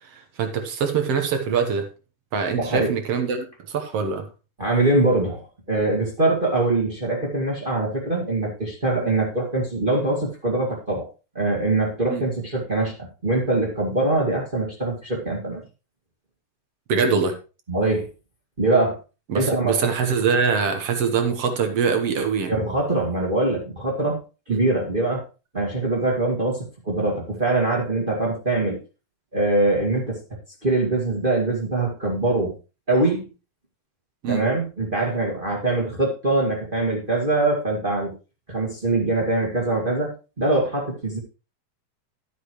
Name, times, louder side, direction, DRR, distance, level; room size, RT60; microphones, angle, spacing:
voice 1, 0.1-1.9 2.3-4.3 9.0-9.1 12.1-12.2 16.9-17.3 19.3-22.5 24.5-24.6 34.2-34.5, right 6 dB, 60° right, 6 dB, 2.0 m, -23 dB
voice 2, 2.6-2.9 4.6-11.1 11.3-13.0 13.2-15.6 17.7-18.1 18.6-19.0 19.3-19.9 22.4-24.2 24.5-25.2 25.5-28.8 29.3-32.5 32.9-33.3 34.3-38.1 38.5-40.1 40.4-41.2, right 2 dB, 20° right, -1 dB, 1.8 m, -23 dB
12.0 x 8.4 x 3.1 m, 0.31 s
omnidirectional pair, 3.4 m